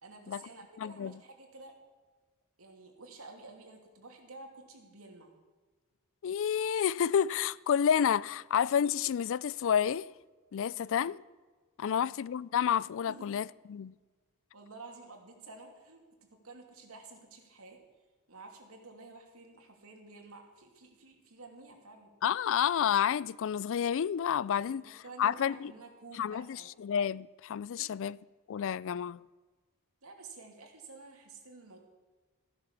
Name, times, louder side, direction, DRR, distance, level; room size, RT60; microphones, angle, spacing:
voice 1, 0.0-1.8 2.6-5.4 10.7-11.0 11.8-12.1 13.1-13.3 14.5-17.8 18.3-22.1 24.7-26.7 27.8-27.9 30.0-31.8, right 3 dB, 75° right, 2.8 m, -51 dB
voice 2, 0.8-1.1 6.2-10.1 10.5-11.2 11.8-13.9 22.2-25.7 26.1-28.2 28.5-29.2, left 8 dB, 60° left, 0.4 m, -30 dB
15.0 x 10.5 x 7.3 m
head